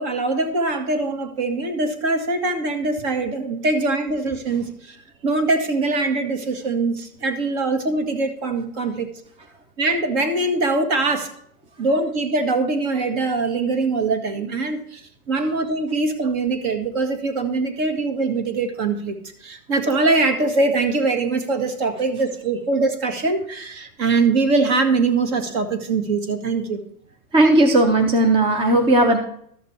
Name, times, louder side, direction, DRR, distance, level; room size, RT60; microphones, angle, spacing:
voice 1, 0.0-5.0 5.2-9.1 9.8-11.3 11.8-15.0 15.3-26.8, right 3 dB, 45° right, 6 dB, 1.9 m, -22 dB
voice 2, 27.3-29.2, right 1 dB, 10° right, 4 dB, 0.6 m, -16 dB
13.0 x 6.5 x 4.4 m, 0.67 s
hypercardioid pair, 140°, 45 cm